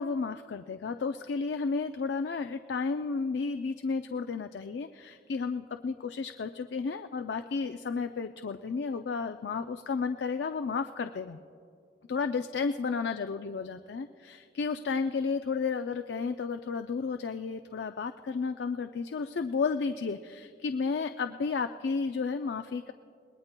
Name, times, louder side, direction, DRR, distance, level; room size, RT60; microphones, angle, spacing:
voice 1, 0.0-11.4 12.1-22.9, left 4 dB, 75° left, 8 dB, 0.4 m, -32 dB
26.5 x 20.0 x 2.2 m, 2.3 s
head